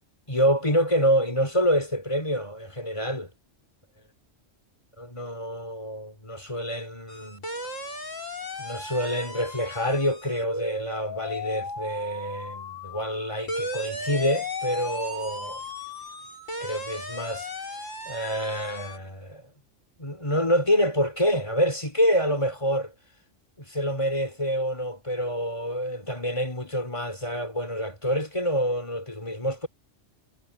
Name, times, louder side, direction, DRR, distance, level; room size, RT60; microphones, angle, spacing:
voice 1, 0.3-3.3 5.0-7.5 8.6-15.6 16.6-17.5 18.1-19.4 20.0-22.9 23.6-29.7, equal, 25° left, 3.5 m, -27 dB
sound 1, 7.1-19.0, left 1 dB, 90° left, 5.5 m, -36 dB
omnidirectional pair, 1.3 m